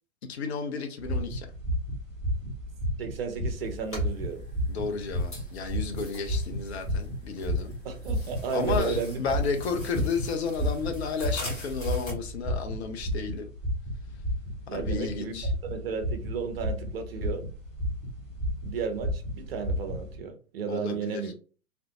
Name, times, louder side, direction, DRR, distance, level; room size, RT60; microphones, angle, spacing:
voice 1, 0.3-1.5 4.7-7.8 8.5-13.5 14.7-15.5 20.7-21.3, left 5 dB, 55° left, 0.5 m, -32 dB
sound 1, 1.0-20.2, equal, ahead, 0.4 m, -32 dB
voice 2, 3.0-4.4 7.8-9.2 14.7-15.4 15.7-17.5 18.6-21.3, right 6 dB, 45° right, 0.6 m, -33 dB
sound 2, 3.6-12.1, left 1 dB, 15° left, 1.0 m, -45 dB
2.4 x 2.1 x 2.7 m
figure-of-eight pair, 110°, 41 cm